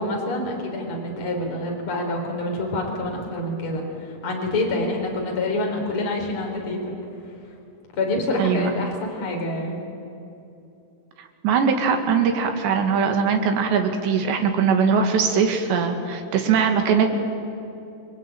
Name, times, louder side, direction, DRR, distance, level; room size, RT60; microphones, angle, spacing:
voice 1, 0.0-6.9 8.0-9.8, left 2 dB, 30° left, 1 dB, 4.4 m, -27 dB
voice 2, 8.4-8.7 11.4-17.1, right 6 dB, 65° right, 5 dB, 4.1 m, -21 dB
28.5 x 22.0 x 9.1 m, 2.7 s
omnidirectional pair, 5.5 m